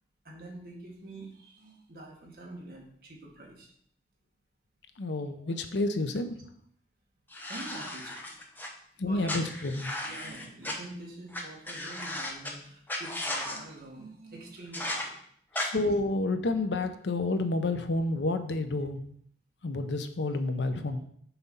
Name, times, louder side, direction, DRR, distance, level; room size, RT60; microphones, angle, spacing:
voice 1, 0.2-3.7 5.3-5.4 7.5-8.3 9.0-9.4 10.0-15.2, right 2 dB, 55° right, -2 dB, 1.7 m, -46 dB
voice 2, 5.0-6.3 9.0-9.9 15.6-19.0 19.6-21.0, left 2 dB, 90° left, 8 dB, 0.7 m, -29 dB
sound 1, 7.3-8.7 9.3-10.7 11.3-11.4 11.7-12.5 12.9-13.6 14.7-15.0 15.5-15.7, left 1 dB, 10° left, 0.7 m, -35 dB
5.9 x 4.1 x 5.3 m, 0.66 s
head